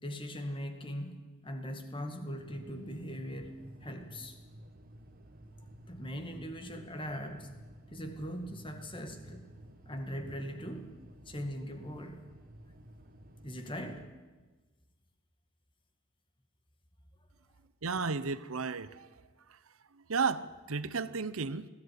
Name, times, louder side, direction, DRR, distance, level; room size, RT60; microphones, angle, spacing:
voice 1, 0.0-4.4 5.9-7.5 7.9-9.5 9.9-10.9 11.3-12.3 13.4-14.1, equal, 25° left, 2.0 m, -40 dB
sound 1, 2.4-14.1, right 1 dB, 45° right, 1.4 m, -53 dB
voice 2, 17.8-19.1 19.9-21.7, right 5 dB, 85° right, 0.8 m, -33 dB
20.0 x 14.0 x 9.6 m
head